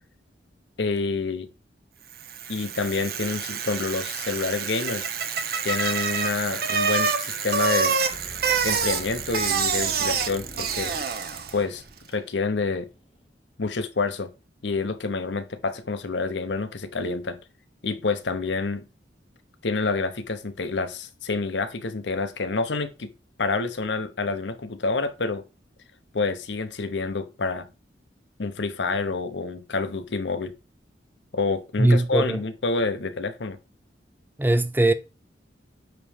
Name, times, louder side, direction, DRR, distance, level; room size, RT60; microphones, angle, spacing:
voice 1, 0.8-1.5 2.5-5.1 5.6-7.9 8.6-10.9 11.5-11.8 12.1-12.9 13.6-14.3 14.6-17.4 17.8-18.9 19.6-23.1 23.4-25.4 26.1-27.7 28.4-30.5 31.3-33.6, left 3 dB, 80° left, 0.8 m, -28 dB
Bicycle, 2.2-11.6, right 5 dB, 55° right, 0.9 m, -27 dB
sound 1, 8.1-13.2, equal, 30° left, 1.7 m, -44 dB
voice 2, 31.8-32.4 34.4-34.9, right 1 dB, 10° right, 0.5 m, -20 dB
9.1 x 3.1 x 5.0 m
head